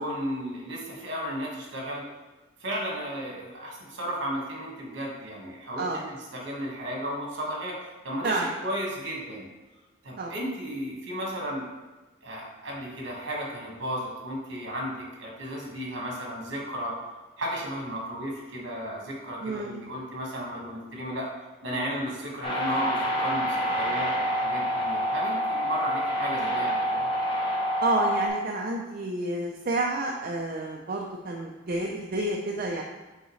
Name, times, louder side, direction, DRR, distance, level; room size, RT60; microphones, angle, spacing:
voice 1, 0.0-2.0 2.6-7.8 8.0-9.5 10.0-11.6 12.2-16.9 17.4-21.3 21.6-27.0, equal, 65° right, -2 dB, 1.7 m, -34 dB
voice 2, 19.4-19.8 27.8-32.8, right 2 dB, 50° right, 0 dB, 0.5 m, -29 dB
sound 1, 22.4-28.3, equal, 25° left, 1.0 m, -27 dB
6.4 x 4.7 x 3.2 m, 1.1 s
head